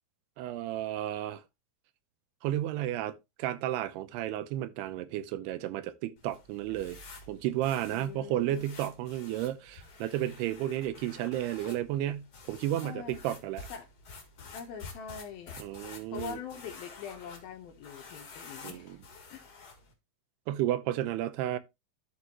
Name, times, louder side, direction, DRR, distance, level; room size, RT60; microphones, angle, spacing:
voice 1, 0.4-1.4 2.4-7.0 7.3-13.7 15.6-16.4 18.6-19.0 20.5-21.6, right 13 dB, 85° right, 2.8 m, -32 dB
sound 1, 6.2-19.9, left 4 dB, 90° left, 0.8 m, -49 dB
voice 2, 7.9-8.6 12.8-13.2 13.7-13.9 14.5-15.6 16.1-19.0 19.3-19.4, left 7 dB, 70° left, 2.7 m, -43 dB
13.0 x 4.7 x 3.0 m
omnidirectional pair, 4.7 m